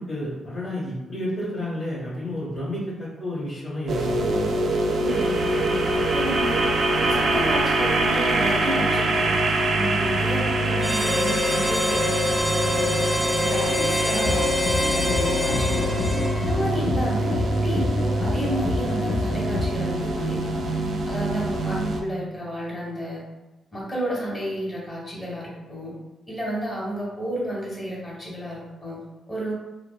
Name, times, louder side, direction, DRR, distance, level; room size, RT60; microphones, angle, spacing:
voice 1, 0.0-4.5 15.4-15.9 16.6-16.9, left 1 dB, 45° left, -10 dB, 1.0 m, -31 dB
sound 1, 3.9-22.0, right 1 dB, 65° right, 0.3 m, -24 dB
voice 2, 5.0-6.6 7.0-9.3 9.7-12.1 12.6-16.0 16.4-20.7 21.0-23.2 23.7-25.9 26.3-29.5, equal, 30° left, -6 dB, 1.4 m, -32 dB
Harmonica, 10.8-16.7, left 1 dB, 10° left, 0.5 m, -25 dB
sound 2, 14.2-19.7, left 3 dB, 70° left, 0.4 m, -29 dB
2.7 x 2.0 x 2.2 m, 1.1 s
supercardioid pair, 50°, 0 cm